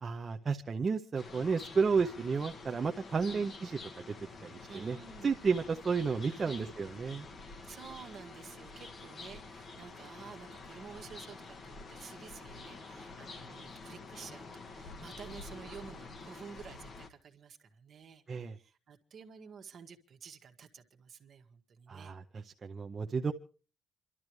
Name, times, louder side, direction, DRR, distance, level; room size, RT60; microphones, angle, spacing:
voice 1, 0.0-3.8 4.1-4.2 4.4-5.0 5.2-7.3 18.3-18.6 21.9-23.3, right 5 dB, 30° right, 4 dB, 0.6 m, -32 dB
sound 1, 1.1-17.1, left 3 dB, 35° left, 1.4 m, -48 dB
voice 2, 3.2-3.6 4.7-5.4 6.3-6.8 7.4-22.1, right 6 dB, 50° right, 5 dB, 1.7 m, -51 dB
28.0 x 12.5 x 3.1 m, 0.37 s
cardioid pair, 180°, 0 cm